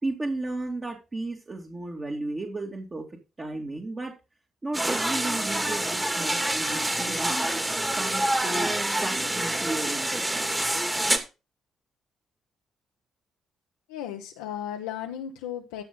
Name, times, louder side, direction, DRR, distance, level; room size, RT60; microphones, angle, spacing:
voice 1, 0.0-4.1 4.6-7.5 7.9-10.4, right 2 dB, 30° right, -1 dB, 2.4 m, -34 dB
sound 1, 4.7-11.2, right 1 dB, 15° right, 2.1 m, -27 dB
voice 2, 13.9-15.8, left 10 dB, 90° left, 2 dB, 0.9 m, -35 dB
13.0 x 5.7 x 3.8 m, 0.29 s
hypercardioid pair, 50°, 0 cm